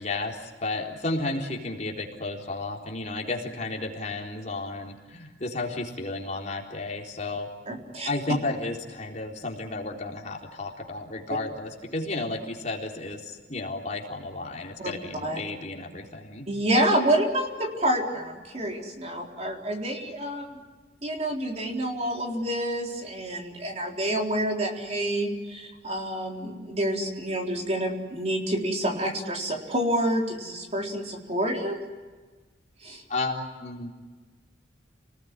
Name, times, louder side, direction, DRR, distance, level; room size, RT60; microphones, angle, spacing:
voice 1, 0.0-7.5 8.0-16.4 33.1-34.0, left 2 dB, 40° left, 0 dB, 4.0 m, -33 dB
voice 2, 7.7-8.1 14.8-14.9 15.2-15.4 16.5-20.6 21.0-31.8 32.8-33.0, right 1 dB, 35° right, 1 dB, 4.1 m, -28 dB
30.0 x 20.0 x 9.8 m, 1.3 s
head